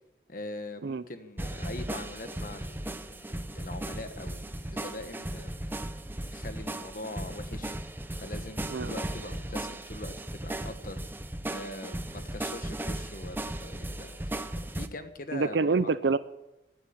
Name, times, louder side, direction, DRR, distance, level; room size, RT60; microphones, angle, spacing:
voice 1, 0.3-5.9 6.3-7.7 8.2-11.0 11.5-14.3 14.7-15.9, left 2 dB, 50° left, 8 dB, 1.4 m, -42 dB
sound 1, 1.4-14.9, right 1 dB, 10° right, 0.6 m, -36 dB
voice 2, 15.3-16.2, right 4 dB, 85° right, 15 dB, 0.6 m, -26 dB
15.5 x 9.7 x 8.6 m, 0.95 s
head